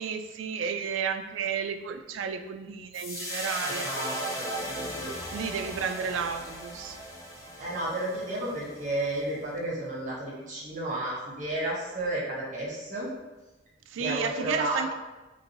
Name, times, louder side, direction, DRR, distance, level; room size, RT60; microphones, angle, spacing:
voice 1, 0.0-3.9 5.3-7.0 13.9-14.9, right 6 dB, 80° right, 7 dB, 0.3 m, -32 dB
sound 1, 2.9-9.3, equal, 15° left, 0.5 m, -37 dB
voice 2, 3.8-5.4 7.4-13.1 14.0-14.9, right 1 dB, 40° right, -5 dB, 0.9 m, -33 dB
3.1 x 2.5 x 3.8 m, 1.1 s
head